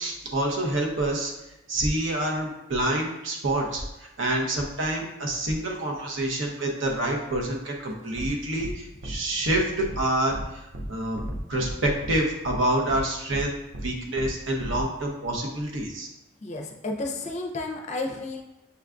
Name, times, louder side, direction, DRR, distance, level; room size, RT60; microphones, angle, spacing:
voice 1, 0.0-1.3 1.7-10.6 10.9-11.2 11.5-13.6 13.8-16.1, right 1 dB, 75° right, 0 dB, 0.8 m, -27 dB
sound 1, 8.2-8.3 8.6-8.7 9.0-9.2 9.4-9.6 9.9-10.0 10.3-10.4 10.7-10.9 11.2-11.7 12.0-12.1 12.4-12.6 12.9-13.0 13.3-13.4 13.7-13.9 14.2-14.3 14.6-14.8, right 1 dB, 40° right, 0.4 m, -34 dB
voice 2, 16.4-18.4, left 2 dB, 35° left, 2 dB, 0.4 m, -32 dB
6.8 x 2.3 x 2.4 m, 0.92 s
head